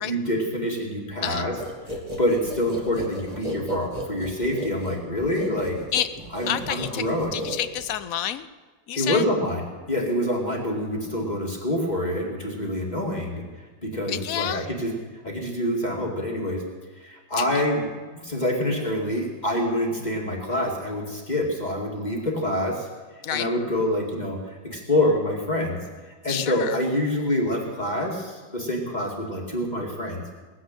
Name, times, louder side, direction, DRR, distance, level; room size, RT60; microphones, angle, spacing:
voice 1, 0.0-1.5 2.2-5.8 6.3-7.4 8.9-13.4 13.8-14.9 15.2-16.6 17.0-17.8 18.1-22.9 23.3-30.2, left 1 dB, 25° left, -1 dB, 2.3 m, -26 dB
sound 1, 1.6-8.1, equal, 20° right, 2.2 m, -35 dB
voice 2, 6.5-7.1 7.3-8.5 8.9-9.2 14.1-14.7 17.4-17.5 23.2-23.5 26.3-26.8, left 10 dB, 65° left, 13 dB, 0.9 m, -28 dB
19.5 x 7.9 x 9.0 m, 1.4 s
omnidirectional pair, 2.0 m